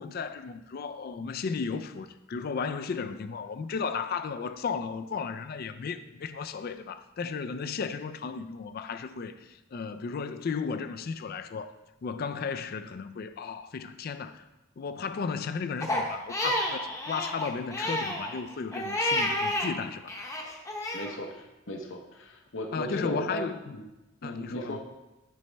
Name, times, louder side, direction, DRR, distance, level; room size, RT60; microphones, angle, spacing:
voice 1, 0.0-11.7 12.0-14.4 14.8-20.3 22.7-23.8 24.2-24.8, left 5 dB, 50° left, 0.4 m, -34 dB
Crying sobbing, 15.8-19.7 20.1-21.1, left 1 dB, 15° left, 0.8 m, -30 dB
voice 2, 20.9-23.4 23.7-23.8 24.2-24.8, equal, 65° left, 0.8 m, -36 dB
10.5 x 5.3 x 3.3 m
head